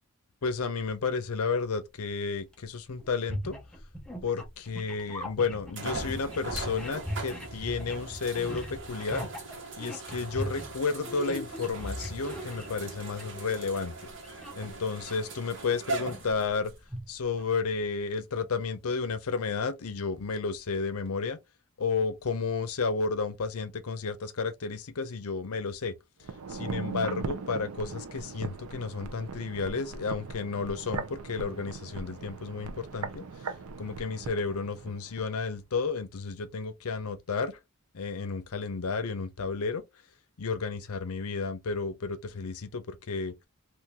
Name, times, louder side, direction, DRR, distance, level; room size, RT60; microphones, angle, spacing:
voice 1, 0.4-3.6 4.2-9.3 9.8-14.1 14.5-16.7 17.1-21.4 21.8-26.0 26.5-33.3 33.8-37.6 37.9-39.8 40.4-43.4, left 4 dB, 85° left, 0.6 m, -32 dB
sound 1, 0.6-1.0 2.5-2.6 2.9-13.4 13.7-15.1 15.6-17.6, equal, 5° left, 0.6 m, -40 dB
sound 2, 4.7-4.8 5.8-16.8 17.5-17.6 21.1-21.2, right 3 dB, 55° right, 1.2 m, -40 dB
sound 3, 26.2-35.3 35.6-35.7, right 4 dB, 80° right, 0.6 m, -39 dB
3.7 x 2.5 x 2.8 m
head